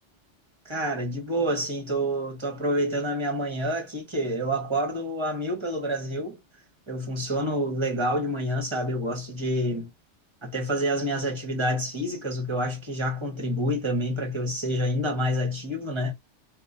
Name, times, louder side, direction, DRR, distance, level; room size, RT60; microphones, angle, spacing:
voice 1, 0.6-6.4 6.9-9.9 10.4-16.1, equal, 25° right, 1.0 m, -28 dB
2.9 x 2.6 x 2.4 m
omnidirectional pair, 1.2 m